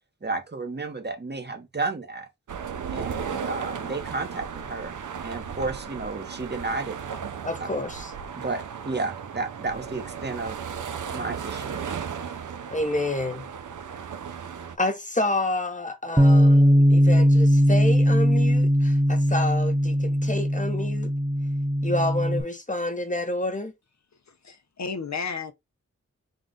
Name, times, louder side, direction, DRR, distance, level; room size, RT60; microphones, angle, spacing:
voice 1, 0.2-2.3 2.9-7.0 8.3-10.6 11.1-11.8, right 3 dB, 35° right, 0.9 m, -32 dB
sound 1, 2.5-14.8, right 7 dB, 80° right, 0.6 m, -35 dB
voice 2, 7.4-8.1 12.7-13.4 14.8-21.1 21.8-23.7, left 1 dB, 25° left, 0.9 m, -29 dB
Bass guitar, 16.2-22.4, equal, 10° right, 0.5 m, -19 dB
voice 3, 24.3-25.5, left 5 dB, 65° left, 0.7 m, -33 dB
3.8 x 2.4 x 3.7 m
wide cardioid pair, 70°, 30 cm